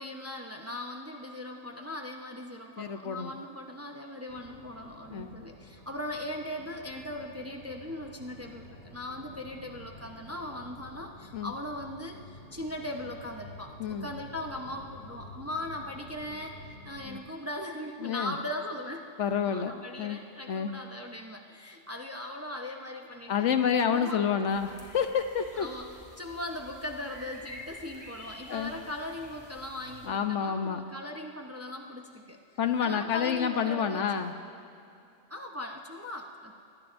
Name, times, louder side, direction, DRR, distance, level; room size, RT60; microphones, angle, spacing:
voice 1, 0.0-13.7 14.0-19.0 19.4-23.5 23.9-24.2 25.6-32.4 32.8-34.0 35.3-36.5, left 1 dB, 15° right, 2 dB, 0.8 m, -39 dB
voice 2, 2.8-3.3 5.1-5.3 11.3-11.5 13.8-14.1 17.1-17.2 18.0-18.4 19.2-20.2 20.5-20.7 23.3-25.7 28.5-28.7 30.1-30.8 32.6-34.3, left 7 dB, 70° left, 8 dB, 1.1 m, -29 dB
sound 1, 4.3-17.1, left 1 dB, 50° left, 2.5 m, -50 dB
sound 2, 24.5-30.1, left 1 dB, 25° left, 3.1 m, -49 dB
24.0 x 20.0 x 2.6 m, 2.6 s
omnidirectional pair, 1.3 m